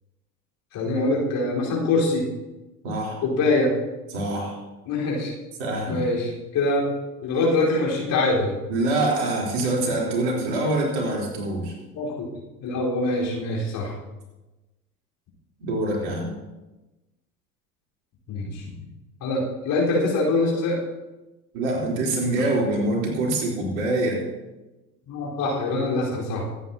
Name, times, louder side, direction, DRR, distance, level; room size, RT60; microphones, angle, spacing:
voice 1, 0.7-2.3 3.2-3.7 4.9-5.3 5.9-6.9 7.2-8.6 11.9-12.3 12.6-13.9 18.3-18.6 19.2-20.8 25.1-26.5, left 2 dB, 45° left, -4 dB, 4.6 m, -24 dB
voice 2, 2.8-3.2 4.1-4.6 5.6-6.0 8.7-11.7 15.6-16.3 21.5-24.2, right 2 dB, 55° right, -2 dB, 4.0 m, -25 dB
24.0 x 9.1 x 2.9 m, 1.1 s
figure-of-eight pair, 75°, 46 cm